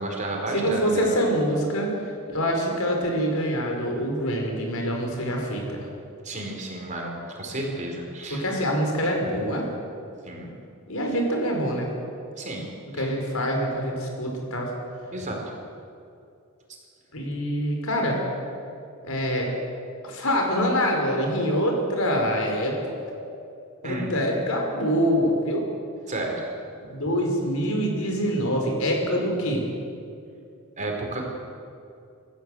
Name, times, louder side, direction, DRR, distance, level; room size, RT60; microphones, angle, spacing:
voice 1, 0.0-1.1 6.2-8.4 10.3-10.5 12.4-12.7 12.9-13.1 15.1-15.4 23.8-24.3 26.1-26.3 30.8-31.2, right 2 dB, 35° right, 0 dB, 4.3 m, -32 dB
voice 2, 0.5-5.9 8.3-9.6 10.9-11.9 12.9-14.7 17.1-18.2 19.0-19.5 20.0-22.9 23.8-25.6 26.9-29.6, equal, 80° left, 1 dB, 5.0 m, -25 dB
26.0 x 14.0 x 7.8 m, 2.5 s
head